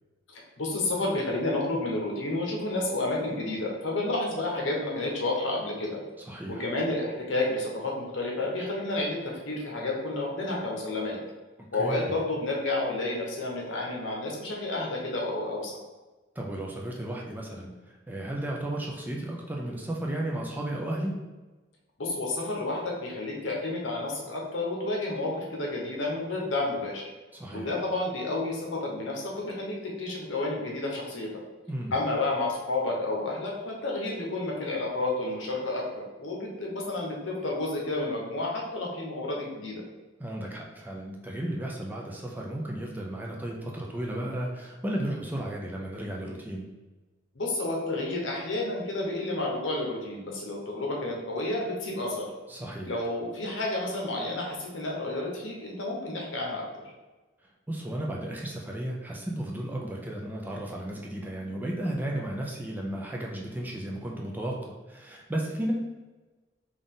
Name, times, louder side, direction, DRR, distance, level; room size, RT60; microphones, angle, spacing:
voice 1, 0.3-6.0 6.5-11.2 11.7-15.8 22.0-27.0 27.5-31.3 31.9-39.8 47.3-52.3 52.8-56.6, left 2 dB, 80° left, -2 dB, 0.9 m, -30 dB
voice 2, 6.3-6.6 11.8-12.2 16.4-21.1 27.3-27.7 31.7-32.0 40.2-46.7 52.5-53.0 57.7-65.7, right 1 dB, 10° right, -2 dB, 0.4 m, -34 dB
3.9 x 2.4 x 3.6 m, 1.2 s
head